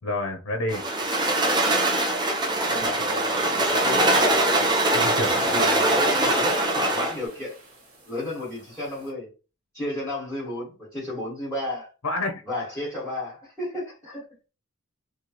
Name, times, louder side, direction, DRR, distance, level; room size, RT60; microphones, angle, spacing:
voice 1, 0.0-0.8 4.9-5.8 12.0-12.4, left 2 dB, 85° left, 0.6 m, -29 dB
sound 1, 0.7-7.2, right 2 dB, 20° right, 0.5 m, -22 dB
voice 2, 2.6-4.4 5.5-7.5 8.1-9.3 9.7-11.9 12.4-14.2, left 1 dB, 5° left, 1.6 m, -32 dB
sound 2, 3.3-9.1, equal, 85° right, 1.1 m, -41 dB
3.1 x 2.3 x 2.9 m
head